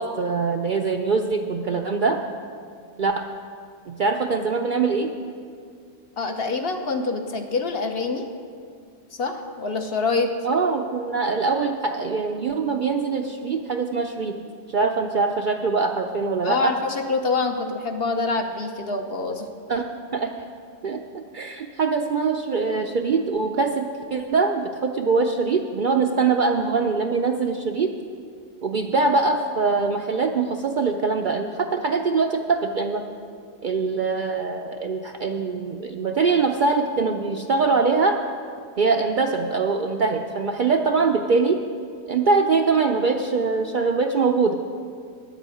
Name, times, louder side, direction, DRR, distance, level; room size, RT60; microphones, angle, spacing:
voice 1, 0.0-2.2 3.0-3.3 3.9-5.1 10.4-14.4 14.7-16.7 19.7-19.8 20.1-20.5 20.8-27.9 28.6-33.0 33.6-38.2 38.8-41.6 42.1-44.5, right 4 dB, 55° right, 4 dB, 0.6 m, -23 dB
voice 2, 6.2-8.3 9.2-10.3 16.4-19.5, left 3 dB, 55° left, 5 dB, 1.0 m, -25 dB
10.5 x 8.3 x 7.6 m, 2.2 s
omnidirectional pair, 1.3 m